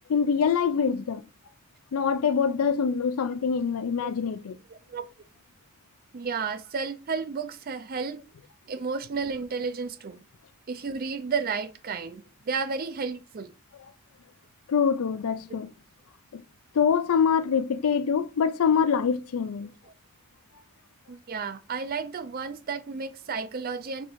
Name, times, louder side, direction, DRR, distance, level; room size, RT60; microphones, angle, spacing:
voice 1, 0.1-1.2 1.9-4.5 14.7-15.7 16.3-16.4 16.7-19.7, left 6 dB, 70° left, 0.4 m, -24 dB
voice 2, 4.7-5.1 6.1-8.2 8.7-10.2 10.7-13.5 19.9-20.0 21.1-24.1, right 5 dB, 40° right, 0.4 m, -32 dB
4.2 x 2.5 x 4.3 m
head